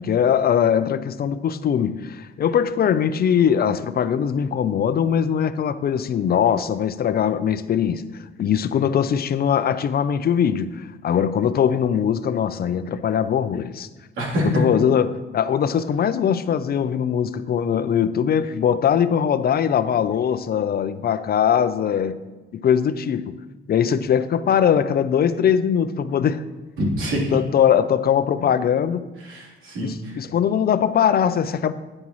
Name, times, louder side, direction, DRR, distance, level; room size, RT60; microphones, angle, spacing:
voice 1, 0.0-8.0 8.4-13.9 14.4-22.2 22.5-23.4 23.7-26.4 27.3-29.1 29.8-31.7, left 8 dB, 50° left, 0.5 m, -21 dB
voice 2, 14.2-14.6 26.8-27.4 29.2-30.2, equal, 85° right, 3.4 m, -25 dB
9.8 x 9.4 x 3.1 m
cardioid pair, 90°, 20 cm